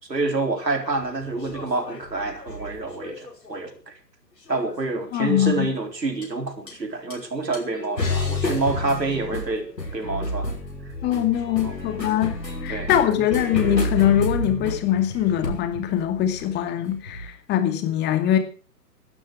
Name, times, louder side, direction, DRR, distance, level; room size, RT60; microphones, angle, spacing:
voice 1, 0.1-3.8 4.5-10.6 11.5-11.8 12.7-13.2, right 3 dB, 85° right, 6 dB, 4.1 m, -28 dB
sound 1, 1.0-3.6 4.5-5.0 6.2-6.3 6.7-6.8 7.1-7.2 7.5-17.3, left 1 dB, 85° left, 5.7 m, -31 dB
voice 2, 5.1-5.7 11.0-18.4, left 11 dB, 20° left, 7 dB, 2.3 m, -22 dB
17.5 x 12.5 x 4.9 m, 0.37 s
figure-of-eight pair, 125°, 49 cm